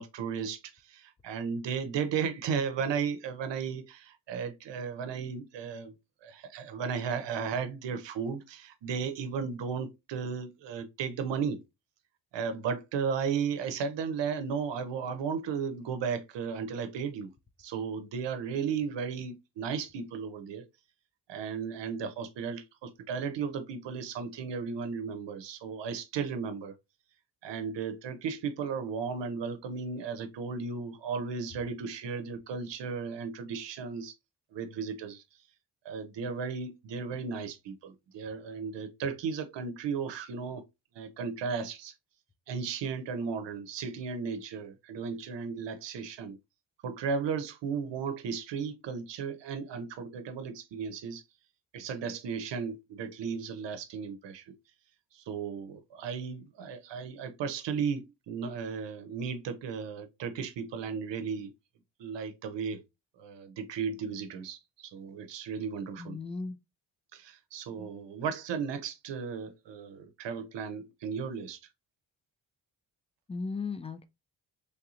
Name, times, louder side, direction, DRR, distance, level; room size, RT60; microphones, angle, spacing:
voice 1, 0.0-5.9 6.2-11.6 12.3-17.3 17.6-20.7 21.3-26.8 27.4-34.1 34.5-35.2 35.8-40.7 40.9-41.9 42.5-46.4 46.8-51.2 51.7-54.6 55.1-61.5 62.0-62.8 63.2-66.2 67.1-71.6, right 6 dB, 60° right, 0.8 m, -35 dB
voice 2, 66.0-66.6 73.3-74.0, left 4 dB, 15° left, 0.4 m, -36 dB
3.5 x 2.7 x 2.4 m
hypercardioid pair, 45°, 48 cm